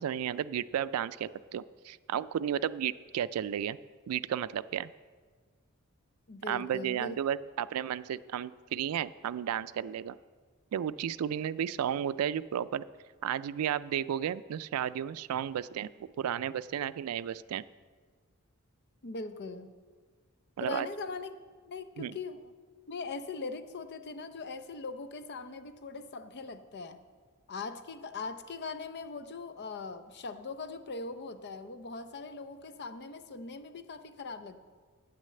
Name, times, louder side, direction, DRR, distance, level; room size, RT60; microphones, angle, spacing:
voice 1, 0.0-3.8 4.1-4.9 6.5-10.2 10.7-12.8 13.2-15.9 16.2-17.6 20.6-20.9 22.0-22.2, right 9 dB, 90° right, 17 dB, 0.3 m, -33 dB
voice 2, 6.3-7.2 19.0-19.7 20.6-21.4 21.7-22.5 22.9-27.0 27.5-34.6, left 4 dB, 50° left, 10 dB, 0.6 m, -40 dB
9.0 x 6.4 x 7.7 m, 1.5 s
head